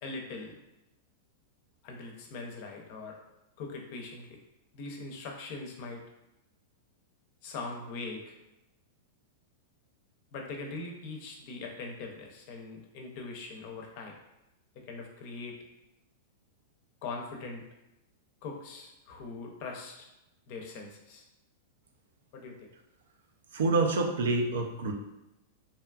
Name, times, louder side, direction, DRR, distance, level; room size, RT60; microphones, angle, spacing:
voice 1, 0.0-0.6 1.8-3.2 3.6-4.4 4.7-6.0 7.4-8.3 10.3-14.2 14.9-15.6 17.0-17.6 18.4-20.1 20.5-21.2 22.3-22.7, left 3 dB, 50° left, 1 dB, 0.5 m, -41 dB
voice 2, 23.5-24.9, right 3 dB, 85° right, 3 dB, 0.4 m, -27 dB
2.7 x 2.3 x 2.3 m, 0.93 s
hypercardioid pair, 130°, 0 cm